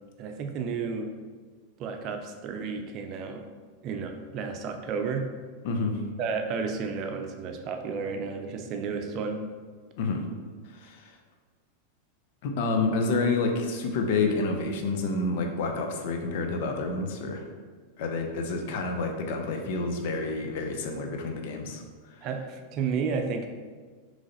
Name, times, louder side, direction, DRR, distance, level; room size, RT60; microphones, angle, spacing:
voice 1, 0.2-1.1 1.8-3.4 3.8-5.3 6.2-9.4 22.2-23.5, right 5 dB, 45° right, 5 dB, 0.5 m, -32 dB
voice 2, 5.6-6.0 10.0-10.2 10.8-11.1 12.4-17.4 18.0-21.8, left 3 dB, 65° left, 4 dB, 0.6 m, -28 dB
3.8 x 3.2 x 3.9 m, 1.5 s
hypercardioid pair, 115°, 0 cm